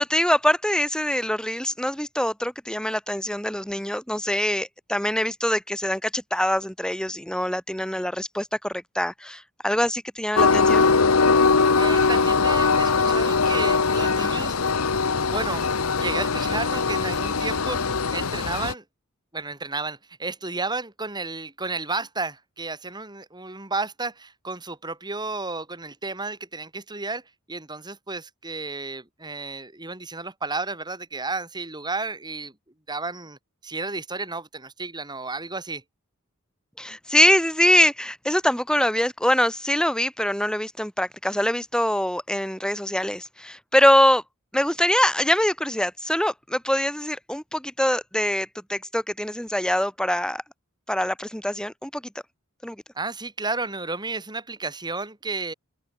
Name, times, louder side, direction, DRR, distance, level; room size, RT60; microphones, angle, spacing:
voice 1, 0.0-10.9 36.8-44.2 44.5-50.4 50.9-52.0 52.6-52.8, left 1 dB, 5° left, 3.5 m, -23 dB
Train, 10.4-18.7, left 4 dB, 80° left, 1.1 m, -21 dB
voice 2, 11.8-14.6 15.3-18.8 19.3-27.2 27.5-32.5 32.9-35.8 53.0-55.5, right 3 dB, 20° right, 5.5 m, -32 dB
head